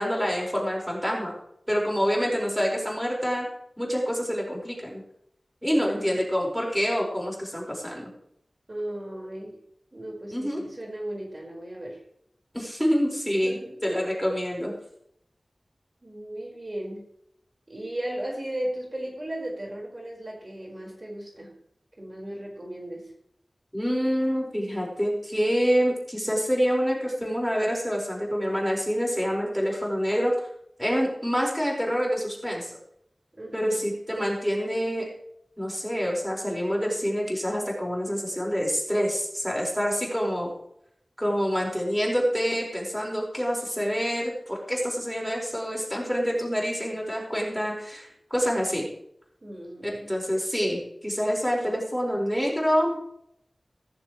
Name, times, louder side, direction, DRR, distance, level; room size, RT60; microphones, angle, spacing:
voice 1, 0.0-1.3 1.7-3.5 3.8-5.0 5.6-8.1 10.3-10.6 12.5-14.7 23.7-30.3 30.8-32.7 33.5-35.1 35.6-40.5 41.2-48.9 49.8-53.0, equal, ahead, -2 dB, 4.8 m, -27 dB
voice 2, 5.7-6.2 8.7-9.6 9.9-12.0 13.4-13.8 16.0-17.0 17.7-21.5 22.0-23.1 33.4-33.8 49.4-50.1, right 1 dB, 40° right, -2 dB, 4.7 m, -36 dB
16.5 x 14.0 x 3.1 m, 0.73 s
wide cardioid pair, 70°, 0 cm